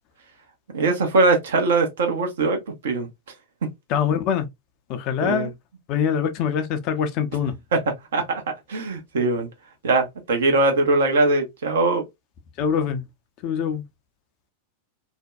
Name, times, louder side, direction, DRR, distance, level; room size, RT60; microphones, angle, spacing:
voice 1, 0.7-3.1 3.6-3.7 5.2-5.5 7.7-8.4 8.7-9.5 9.8-12.0, right 3 dB, 60° right, 0.8 m, -21 dB
voice 2, 3.9-4.5 4.9-5.5 5.9-7.6 12.6-13.0 13.4-13.8, left 7 dB, 40° left, 0.5 m, -24 dB
2.6 x 2.1 x 2.3 m
figure-of-eight pair, 90°, 0 cm